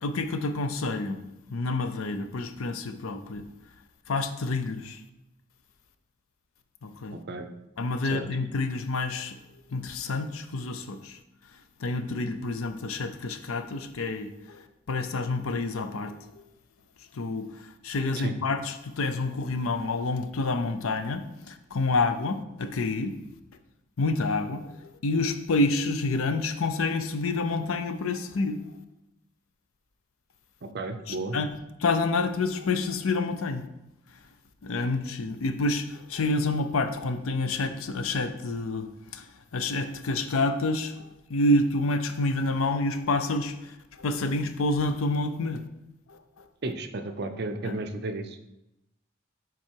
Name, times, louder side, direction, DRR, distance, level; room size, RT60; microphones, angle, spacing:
voice 1, 0.0-1.2 1.5-3.5 4.1-5.0 6.8-7.2 7.8-9.4 9.7-11.2 11.5-16.4 17.1-23.2 24.0-28.8 31.1-31.5 31.8-33.7 34.1-34.2 34.6-45.6 46.1-46.4 47.6-47.8, left 2 dB, 80° left, 9 dB, 0.6 m, -28 dB
voice 2, 7.1-7.5 8.1-8.3 18.2-18.3 30.7-31.4 46.6-48.4, right 2 dB, 50° right, 7 dB, 0.6 m, -33 dB
7.3 x 3.9 x 4.6 m, 0.90 s
head